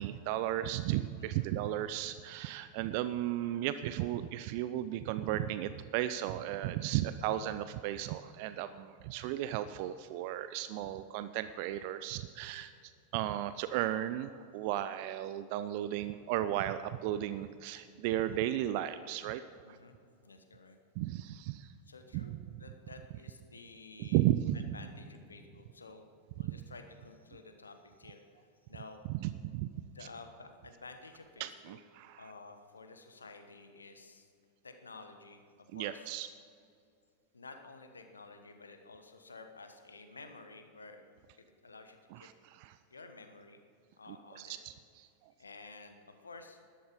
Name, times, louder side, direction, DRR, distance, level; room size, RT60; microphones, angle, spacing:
voice 1, 0.0-19.4 19.7-19.8 21.0-21.7 22.1-22.4 24.0-24.8 26.4-26.6 29.1-29.7 31.4-32.3 35.7-36.3 42.1-42.8 44.4-45.1, right 13 dB, 45° right, 12 dB, 0.4 m, -35 dB
voice 2, 1.2-1.5 19.6-20.0 20.2-20.8 21.9-24.2 24.5-29.0 29.9-31.8 32.2-34.3 34.6-36.1 37.3-41.0 41.4-42.3 42.9-43.6 44.0-44.6 45.4-46.7, left 3 dB, 75° left, 7 dB, 1.2 m, -52 dB
13.0 x 11.5 x 5.3 m, 2.3 s
figure-of-eight pair, 90°, 0 cm